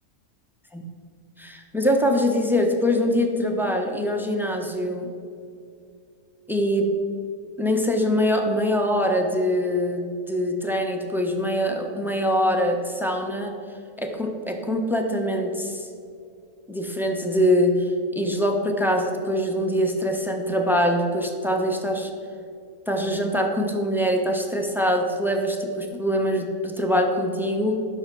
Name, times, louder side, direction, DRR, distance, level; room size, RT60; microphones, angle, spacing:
voice 1, 1.4-5.1 6.5-6.9 7.6-13.5 14.0-15.9 16.7-22.1 22.9-27.8, equal, ahead, 3 dB, 0.8 m, -23 dB
11.5 x 6.7 x 6.1 m, 2.4 s
omnidirectional pair, 1.6 m